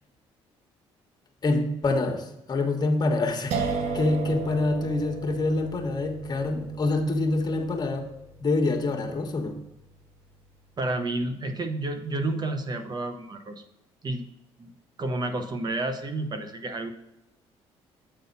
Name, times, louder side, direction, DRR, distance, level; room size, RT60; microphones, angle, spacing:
voice 1, 1.4-3.6 3.9-8.1 8.4-9.6, left 2 dB, 35° left, 3 dB, 1.3 m, -26 dB
sound 1, 3.5-10.4, right 4 dB, 90° right, 0.9 m, -35 dB
voice 2, 10.8-13.6 14.0-14.2 14.6-14.7 15.0-16.9, right 2 dB, 35° right, 7 dB, 0.9 m, -30 dB
8.1 x 4.1 x 5.4 m, 0.88 s
cardioid pair, 90°, 11 cm